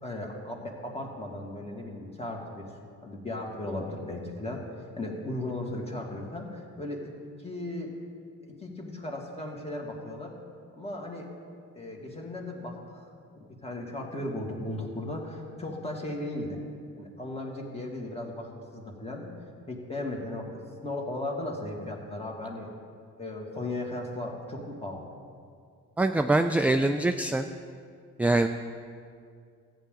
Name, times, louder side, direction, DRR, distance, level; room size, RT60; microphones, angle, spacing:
voice 1, 0.0-2.7 3.0-7.0 7.4-7.9 8.4-10.3 10.7-11.3 11.8-13.0 13.3-16.6 17.0-19.3 19.7-22.7 23.2-25.1, left 1 dB, 20° left, 0 dB, 2.0 m, -36 dB
voice 2, 26.0-27.5 28.2-28.5, right 2 dB, 5° right, 6 dB, 0.3 m, -24 dB
14.0 x 9.1 x 3.7 m, 2.2 s
cardioid pair, 90°, 30 cm